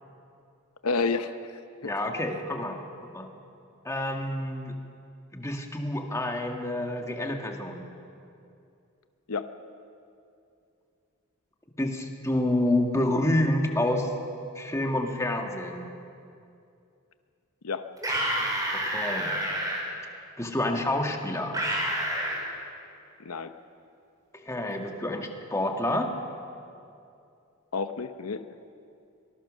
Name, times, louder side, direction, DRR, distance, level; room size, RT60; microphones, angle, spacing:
voice 1, 0.8-1.9 9.3-9.5 17.6-17.8 23.2-23.5 27.7-28.4, left 4 dB, 90° left, 10 dB, 0.8 m, -30 dB
voice 2, 1.8-3.3 3.8-4.7 5.3-7.8 11.8-14.1 14.5-15.9 18.7-19.4 20.4-21.6 24.3-26.1, left 1 dB, 15° left, 3 dB, 1.7 m, -28 dB
sound 1, 18.0-19.8 21.5-22.4, right 1 dB, 15° right, 4.5 m, -28 dB
23.5 x 19.5 x 6.4 m, 2.5 s
head